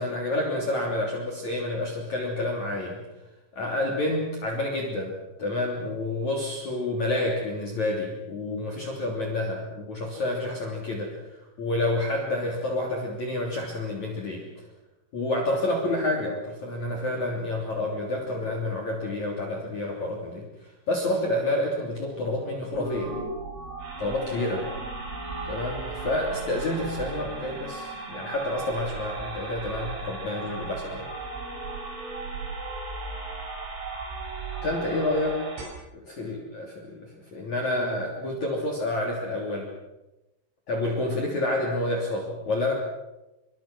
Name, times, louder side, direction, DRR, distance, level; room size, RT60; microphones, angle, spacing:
voice 1, 0.0-3.0 3.5-11.2 11.6-14.5 15.1-23.1 24.0-24.7 25.5-31.1 34.6-35.4 35.9-39.7 40.7-42.7, left 1 dB, 40° left, -1 dB, 4.0 m, -29 dB
sound 1, 22.7-35.6, right 3 dB, 90° right, 9.5 m, -36 dB
26.0 x 26.0 x 6.2 m, 0.99 s
omnidirectional pair, 5.8 m